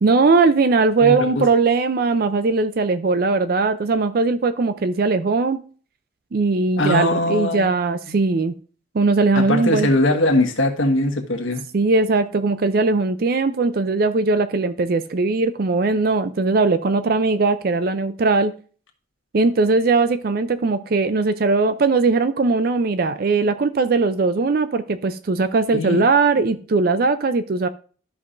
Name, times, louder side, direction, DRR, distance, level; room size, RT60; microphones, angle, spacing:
voice 1, 0.0-5.6 6.3-8.5 8.9-9.9 11.7-18.5 19.3-27.7, right 3 dB, 50° right, 0.4 m, -19 dB
voice 2, 1.0-1.4 6.8-7.7 9.3-11.6 25.7-26.0, left 2 dB, 85° left, 1.5 m, -21 dB
13.0 x 5.6 x 2.5 m
head